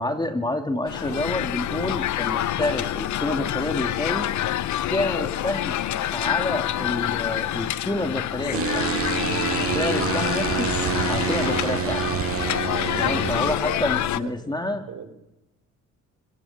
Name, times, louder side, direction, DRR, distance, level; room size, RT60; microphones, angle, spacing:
voice 1, 0.0-4.3 4.9-5.8 6.1-8.9 9.7-10.7 11.1-12.0 13.0-14.8, left 1 dB, 15° left, 6 dB, 2.8 m, -28 dB
sound 1, 0.9-14.2, left 12 dB, 70° left, 0.9 m, -27 dB
sound 2, 8.5-13.5, right 9 dB, 50° right, 1.0 m, -27 dB
voice 2, 13.6-15.1, right 8 dB, 70° right, 9 dB, 4.6 m, -40 dB
25.0 x 23.0 x 7.6 m, 0.93 s
cardioid pair, 90°, 30 cm